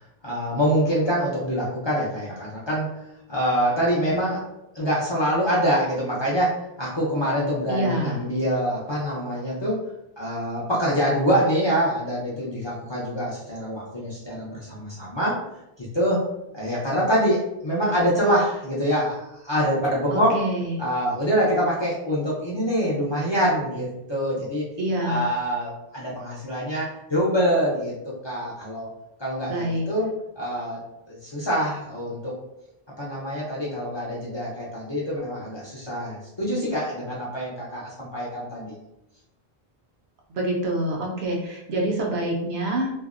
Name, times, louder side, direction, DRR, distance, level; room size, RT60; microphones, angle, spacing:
voice 1, 0.2-2.9 3.3-4.4 4.7-9.8 10.2-15.4 15.8-16.2 16.5-20.4 20.8-24.7 25.0-28.9 29.2-30.8 31.1-32.3 33.0-38.7, equal, 35° left, -7 dB, 0.5 m, -25 dB
voice 2, 7.7-8.2 20.1-20.8 24.8-25.2 29.5-29.9 40.3-42.9, right 1 dB, 85° right, -1 dB, 0.9 m, -26 dB
2.6 x 2.0 x 2.4 m, 0.86 s
omnidirectional pair, 1.0 m